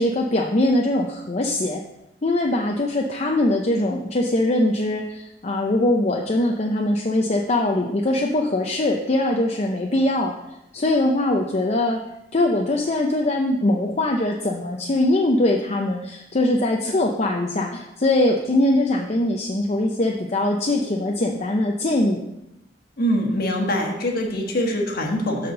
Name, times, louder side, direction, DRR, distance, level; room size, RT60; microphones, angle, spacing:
voice 1, 0.0-1.8 2.2-10.3 10.7-12.0 12.3-22.2, left 1 dB, 35° left, 1 dB, 0.6 m, -22 dB
voice 2, 23.0-25.5, equal, 55° left, 1 dB, 1.5 m, -23 dB
6.8 x 5.8 x 6.6 m, 0.89 s
head